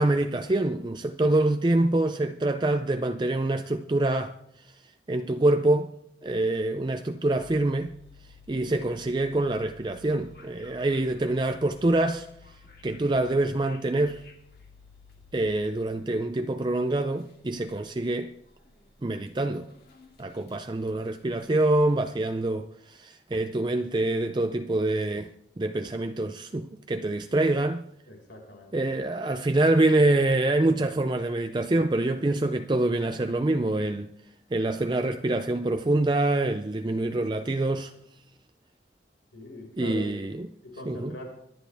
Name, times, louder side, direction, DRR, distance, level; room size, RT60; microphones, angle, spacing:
voice 1, 0.0-4.3 5.1-5.9 6.2-7.9 8.5-12.3 12.8-14.2 15.3-18.3 19.0-19.7 20.2-25.3 25.6-27.9 28.7-34.1 34.5-37.9 39.8-40.5 40.9-41.1, right 2 dB, 25° right, 0.4 m, -25 dB
sound 1, 7.4-21.8, left 4 dB, 55° left, 2.4 m, -54 dB
voice 2, 28.0-28.9 39.3-40.1 40.6-41.3, left 1 dB, 90° left, 5.2 m, -41 dB
24.5 x 10.5 x 3.5 m
head